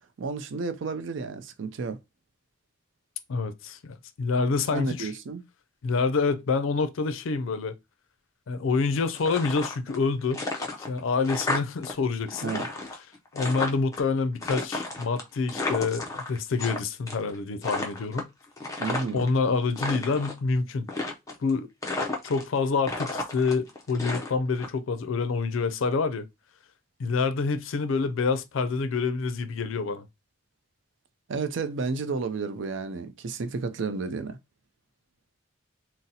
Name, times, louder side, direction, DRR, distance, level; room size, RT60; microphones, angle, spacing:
voice 1, 0.2-2.0 4.7-5.4 12.4-12.7 18.8-19.3 31.3-34.4, right 4 dB, 65° right, 0.4 m, -31 dB
voice 2, 3.3-5.1 5.8-7.7 8.5-10.4 10.8-12.5 13.3-18.3 19.1-20.9 21.4-21.7 22.2-26.3 27.0-30.1, left 4 dB, 75° left, 0.4 m, -27 dB
sound 1, 9.1-10.0 10.3-11.9 12.2-14.0 14.4-16.8 17.1-17.3 17.6-19.3 19.6-20.4 20.9-21.5 21.8-22.6 22.8-24.7, left 2 dB, 15° left, 0.4 m, -32 dB
3.9 x 2.0 x 2.6 m
head